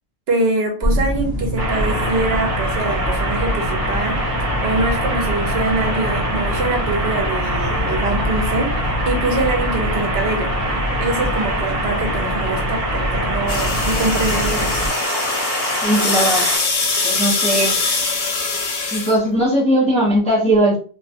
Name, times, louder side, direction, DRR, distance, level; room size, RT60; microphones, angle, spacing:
voice 1, 0.3-4.2 4.6-8.7 9.0-10.5 11.0-14.8, right 2 dB, 70° right, 3 dB, 0.9 m, -24 dB
sound 1, 0.8-14.9, equal, 20° right, 0.9 m, -25 dB
sound 2, 1.6-16.6, right 1 dB, 45° right, 1.3 m, -25 dB
sound 3, 13.5-19.2, left 3 dB, 75° left, 0.9 m, -22 dB
voice 2, 15.8-16.5 17.0-17.8 18.9-20.8, right 1 dB, 10° left, -3 dB, 0.4 m, -18 dB
2.4 x 2.2 x 2.6 m, 0.40 s
omnidirectional pair, 1.1 m